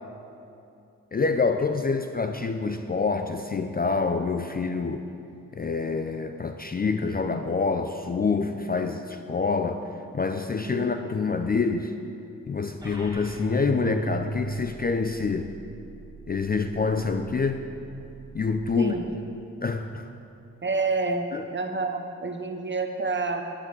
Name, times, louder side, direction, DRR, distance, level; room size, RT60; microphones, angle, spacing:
voice 1, 1.1-5.0 5.5-9.9 10.1-11.9 12.5-15.5 16.3-17.6 18.3-18.9 19.6-20.1 21.3-21.4, left 4 dB, 25° left, 7 dB, 0.5 m, -26 dB
sound 1, 12.8-18.8, right 3 dB, 10° right, 2.2 m, -38 dB
voice 2, 20.6-23.4, right 3 dB, 30° right, 5 dB, 1.1 m, -28 dB
10.0 x 9.1 x 4.0 m, 2.7 s
supercardioid pair, 40°, 37 cm